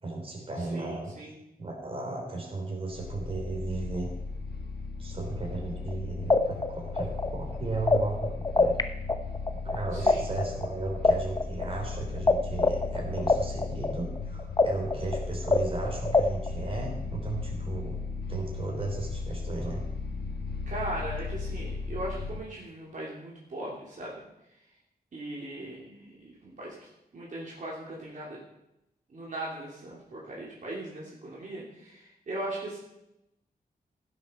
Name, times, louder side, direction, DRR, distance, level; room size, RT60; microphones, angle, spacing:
voice 1, 0.0-1.1 1.6-4.1 5.0-8.8 9.6-18.0 18.3-19.8, right 3 dB, 35° right, 0 dB, 3.4 m, -35 dB
voice 2, 0.7-1.3 9.9-10.3 20.7-24.2 25.1-26.7 27.1-28.4 29.1-32.8, right 1 dB, 55° right, -5 dB, 3.0 m, -38 dB
sound 1, 2.9-22.4, left 3 dB, 90° left, 1.6 m, -36 dB
sound 2, 5.9-6.0 6.3-8.8 9.1-12.3 12.6-16.5, left 3 dB, 25° left, 0.7 m, -24 dB
15.5 x 7.8 x 5.6 m, 0.86 s
wide cardioid pair, 165°, 16 cm